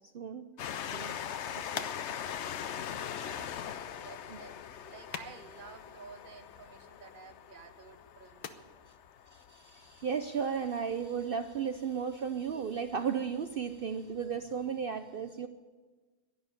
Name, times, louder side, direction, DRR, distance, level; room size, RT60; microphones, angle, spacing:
voice 1, 0.1-0.5 0.9-1.2 1.7-1.9 4.3-4.4 9.3-15.5, right 6 dB, 60° right, 9 dB, 0.5 m, -35 dB
Train, 0.6-11.8 12.5-12.6 12.8-12.9, left 9 dB, 60° left, 0.8 m, -42 dB
sound 1, 0.9-10.6, left 8 dB, 85° left, 1.4 m, -50 dB
voice 2, 3.0-3.6 4.0-8.7, right 5 dB, 40° right, 9 dB, 1.0 m, -52 dB
11.5 x 11.0 x 9.4 m, 1.3 s
omnidirectional pair, 1.6 m